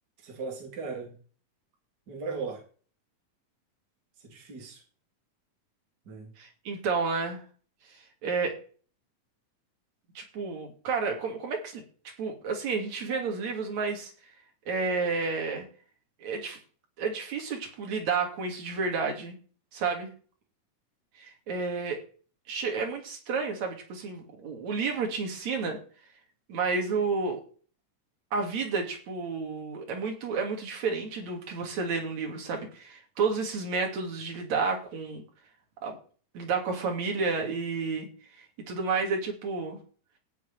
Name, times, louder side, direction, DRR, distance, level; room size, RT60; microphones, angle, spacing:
voice 1, 0.2-1.1 2.1-2.6 4.2-4.8 6.1-6.3, right 4 dB, 30° right, -1 dB, 3.8 m, -37 dB
voice 2, 6.4-7.4 8.2-8.6 10.2-11.8 12.2-14.1 14.7-15.6 16.2-16.6 17.0-19.4 19.7-20.1 21.2-22.0 22.5-25.8 26.5-27.4 28.3-35.2 35.8-36.0 36.3-38.1 38.3-39.8, right 4 dB, 60° right, 2 dB, 4.0 m, -31 dB
14.5 x 6.2 x 9.4 m, 0.42 s
omnidirectional pair, 3.6 m